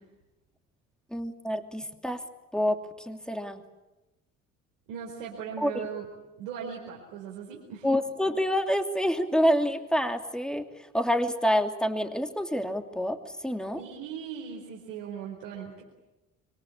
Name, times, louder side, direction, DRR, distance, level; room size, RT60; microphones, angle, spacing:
voice 1, 1.1-2.2 2.5-3.6 5.6-5.9 7.8-13.8, equal, ahead, 6 dB, 2.9 m, -27 dB
voice 2, 4.9-6.1 6.4-7.9 13.8-15.8, right 7 dB, 80° right, -2 dB, 4.7 m, -38 dB
26.5 x 23.5 x 8.6 m, 1.0 s
hypercardioid pair, 55°, 38 cm